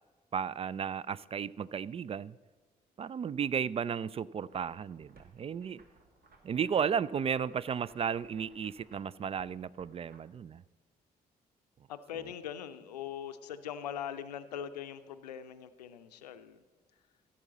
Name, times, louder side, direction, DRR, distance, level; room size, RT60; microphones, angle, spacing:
voice 1, 0.3-2.4 3.0-5.8 6.4-10.6, right 7 dB, 30° right, 0.3 m, -34 dB
sound 1, 4.5-10.2, right 3 dB, 45° right, 1.8 m, -63 dB
voice 2, 11.9-16.6, left 9 dB, 80° left, 0.5 m, -41 dB
15.5 x 7.4 x 4.1 m
figure-of-eight pair, 40°, 20 cm